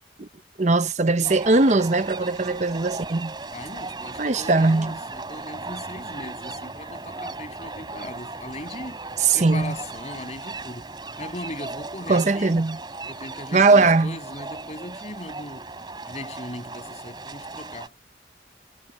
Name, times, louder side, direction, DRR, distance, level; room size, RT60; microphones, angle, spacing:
voice 1, 0.6-3.3 4.2-5.0 9.2-9.7 12.1-12.8 13.5-14.2, right 3 dB, 40° right, 0.8 m, -20 dB
sound 1, 1.2-17.9, right 3 dB, 25° right, 3.2 m, -37 dB
voice 2, 3.5-9.0 9.3-10.9 11.2-12.6 13.1-15.7 16.1-18.0, left 1 dB, 40° left, 7.2 m, -38 dB
head